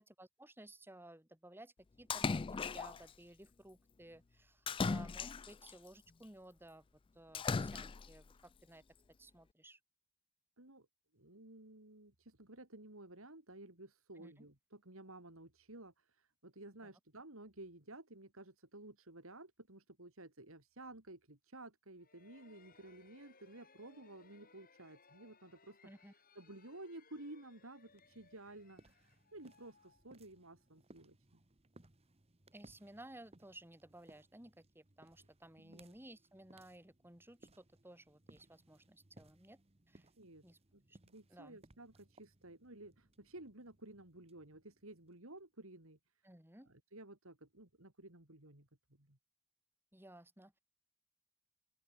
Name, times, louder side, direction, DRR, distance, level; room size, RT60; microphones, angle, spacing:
voice 1, 0.0-6.8 7.1-8.8 9.2-9.8 14.2-14.5 25.8-26.1 32.5-39.6 39.9-40.1 40.4-40.6 40.9-41.0 41.3-41.6 46.2-46.7 49.9-50.6, right 1 dB, 10° right, 2.8 m, -57 dB
Splash splatter, 2.1-3.1 4.7-5.7 7.3-8.2, left 4 dB, 25° left, 0.3 m, -37 dB
voice 2, 10.6-10.9 11.1-31.4 35.6-35.9 40.2-40.5 40.7-46.0 46.7-49.2, right 2 dB, 65° right, 3.6 m, -54 dB
sound 1, 22.0-30.6, left 4 dB, 40° left, 6.5 m, -67 dB
sound 2, 27.9-45.4, right 2 dB, 25° right, 1.3 m, -66 dB
open air
head